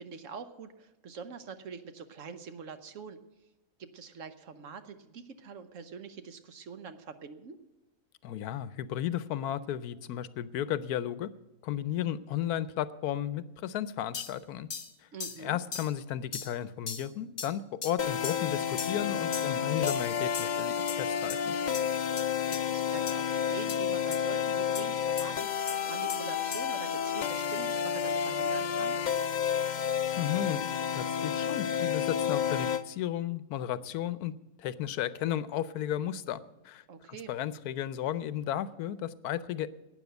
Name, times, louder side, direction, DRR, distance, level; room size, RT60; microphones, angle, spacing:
voice 1, 0.0-3.2 3.8-7.6 15.1-15.6 22.5-29.0 36.9-37.3, right 6 dB, 60° right, 9 dB, 1.1 m, -44 dB
voice 2, 8.2-11.3 11.6-14.7 15.4-21.6 30.2-30.7 30.9-34.3 34.6-36.8 37.1-39.7, left 11 dB, 90° left, 15 dB, 1.1 m, -34 dB
sound 1, 14.1-14.3 14.7-14.9 15.2-15.4 15.7-15.9 16.3-16.5 16.9-17.1 17.4-17.5 17.8-17.9 18.2-18.4 18.8-19.0 19.3-19.5 19.9-20.1 20.3-20.5 20.9-21.0 21.3-21.4 21.7-21.8 22.2-22.3 22.5-22.6 23.1-23.2 23.7-23.8 24.1-24.2 24.7-24.8 25.2-25.3 25.7-25.8 26.1-26.2 26.5-26.6, left 6 dB, 45° left, 1.2 m, -38 dB
sound 2, 18.0-32.8, left 8 dB, 70° left, 0.4 m, -30 dB
12.0 x 9.3 x 8.0 m, 1.0 s
omnidirectional pair, 1.6 m